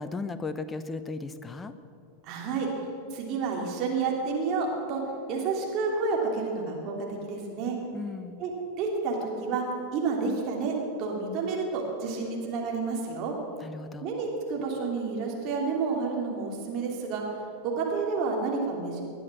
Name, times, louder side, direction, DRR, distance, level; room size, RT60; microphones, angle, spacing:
voice 1, 0.0-1.7 7.9-8.4 13.6-14.1, left 3 dB, 15° left, 12 dB, 0.9 m, -36 dB
voice 2, 2.2-5.0 5.3-7.8 8.4-8.5 8.8-9.6 9.9-13.3 14.0-17.2 17.6-19.0, right 4 dB, 40° right, -1 dB, 3.2 m, -30 dB
19.5 x 11.0 x 6.2 m, 2.5 s
figure-of-eight pair, 90°, 0 cm